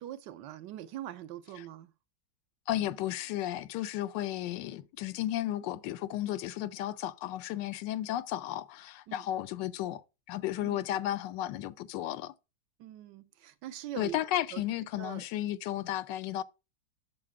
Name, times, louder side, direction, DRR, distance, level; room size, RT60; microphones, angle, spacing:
voice 1, 0.0-1.9 9.1-9.3 10.6-10.8 12.8-14.2 14.5-14.6 15.0-15.2, right 12 dB, 90° right, 1.3 m, -43 dB
voice 2, 2.7-10.0 10.3-12.3 14.0-16.4, left 13 dB, 90° left, 1.2 m, -34 dB
8.5 x 6.6 x 3.6 m
omnidirectional pair, 1.9 m